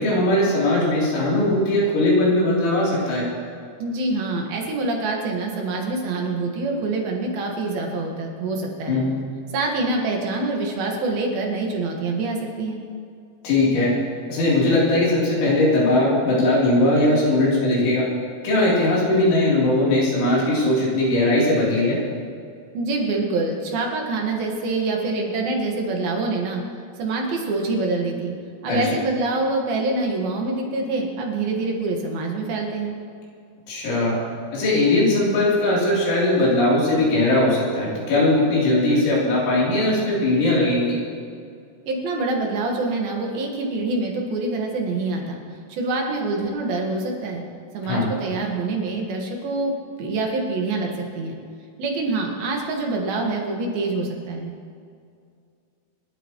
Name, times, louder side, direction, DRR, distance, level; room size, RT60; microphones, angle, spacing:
voice 1, 0.0-3.3 8.9-9.1 13.4-14.0 14.3-18.1 18.4-22.0 28.7-28.8 33.7-34.2 34.5-41.0 47.8-48.1, left 1 dB, 85° left, -6 dB, 5.7 m, -19 dB
voice 2, 3.8-9.0 9.5-12.8 22.7-26.6 27.0-28.3 28.6-33.0 41.9-45.4 45.7-47.4 47.7-49.7 50.0-51.4 51.8-54.5, right 3 dB, 60° right, 1 dB, 2.9 m, -25 dB
25.5 x 12.0 x 3.0 m, 2.3 s
omnidirectional pair, 5.3 m